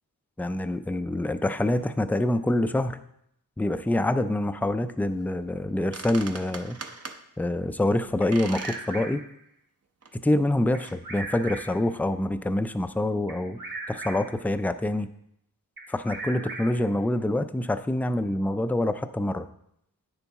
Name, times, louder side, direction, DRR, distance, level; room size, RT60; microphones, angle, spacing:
voice 1, 0.4-3.0 3.6-6.8 7.4-9.2 10.2-13.6 13.9-15.1 15.9-19.5, left 1 dB, 5° left, 10 dB, 0.4 m, -26 dB
sound 1, 5.6-5.7 5.9-7.2 8.3-8.9 9.3-9.4 10.0-10.1 10.8-11.0, right 4 dB, 40° right, 0.8 m, -40 dB
Bird vocalization bird call bird song, 8.2-9.4 10.7-11.9 13.3-14.5 15.8-17.0, right 2 dB, 80° right, 1.1 m, -38 dB
9.1 x 7.0 x 3.6 m, 0.73 s
wide cardioid pair, 75°, 37 cm